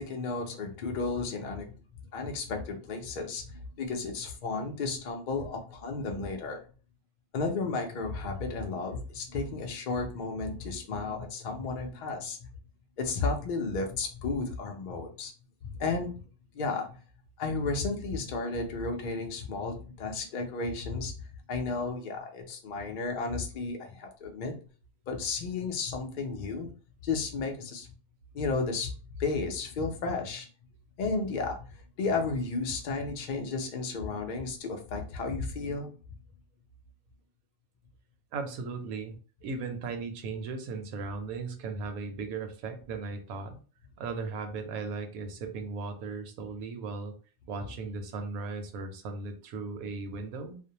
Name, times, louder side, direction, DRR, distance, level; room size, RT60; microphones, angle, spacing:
voice 1, 0.0-1.8 2.1-6.6 7.3-12.5 13.0-15.3 15.6-16.2 16.5-17.0 17.4-21.1 21.5-24.5 25.1-26.7 27.0-27.9 28.3-30.5 31.0-31.7 32.0-35.9, left 3 dB, 80° left, 3 dB, 0.4 m, -33 dB
voice 2, 38.3-39.2 39.4-43.6 44.0-47.1 47.5-50.6, right 4 dB, 80° right, 5 dB, 1.0 m, -37 dB
2.5 x 2.1 x 2.7 m, 0.37 s
omnidirectional pair, 1.5 m